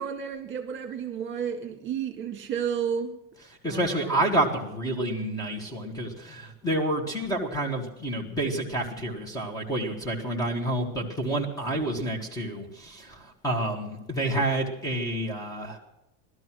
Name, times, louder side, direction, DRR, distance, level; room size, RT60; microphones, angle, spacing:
voice 1, 0.0-3.2 3.7-4.2, right 7 dB, 30° right, 6 dB, 1.9 m, -32 dB
voice 2, 3.6-15.8, right 1 dB, 10° left, 2 dB, 1.7 m, -29 dB
18.0 x 12.5 x 6.1 m, 0.92 s
cardioid pair, 175°, 39 cm